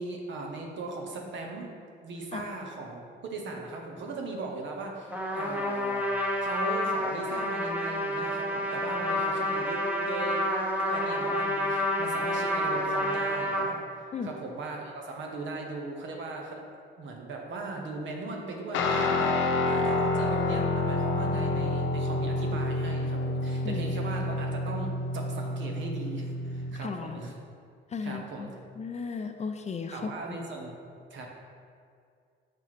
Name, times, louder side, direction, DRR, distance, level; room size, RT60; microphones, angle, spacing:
voice 1, 0.0-1.7 2.0-6.1 6.4-10.4 10.8-13.8 14.2-16.6 17.0-27.3 28.0-28.5 29.9-30.7 31.1-31.3, right 3 dB, 70° right, 1 dB, 1.1 m, -38 dB
Trumpet, 5.1-13.7, equal, 10° right, 1.1 m, -29 dB
Guitar, 18.7-26.9, left 2 dB, 80° left, 0.7 m, -28 dB
voice 2, 26.7-27.2 27.9-28.5 28.8-30.4, left 5 dB, 35° left, 6 dB, 0.5 m, -35 dB
6.8 x 3.1 x 5.8 m, 2.3 s
cardioid pair, 90°, 20 cm